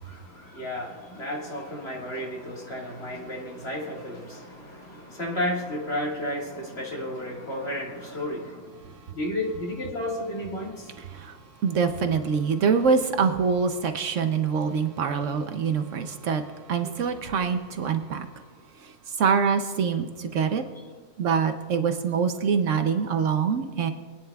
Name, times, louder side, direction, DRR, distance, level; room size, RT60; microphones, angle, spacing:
voice 1, 0.0-8.7 9.1-10.9, left 1 dB, 45° left, -3 dB, 2.1 m, -32 dB
voice 2, 11.6-16.4 16.7-18.3 19.2-20.6 21.2-23.9, right 6 dB, 65° right, 7 dB, 0.9 m, -24 dB
22.0 x 9.5 x 2.3 m, 1.5 s
omnidirectional pair, 1.5 m